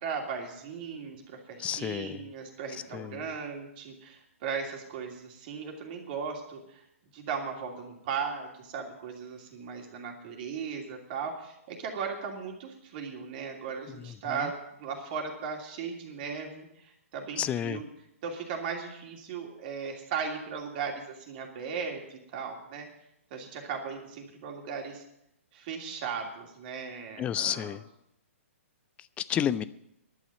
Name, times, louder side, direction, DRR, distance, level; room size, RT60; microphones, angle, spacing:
voice 1, 0.0-6.8 7.1-17.8 18.2-22.9 23.3-25.0 25.5-27.8, right 6 dB, 40° right, 1 dB, 2.8 m, -37 dB
voice 2, 1.6-2.3 2.9-3.3 13.9-14.5 17.4-17.8 27.2-27.8 29.2-29.6, left 9 dB, 15° left, 17 dB, 0.4 m, -31 dB
11.0 x 8.5 x 9.0 m, 0.80 s
hypercardioid pair, 140°, 8 cm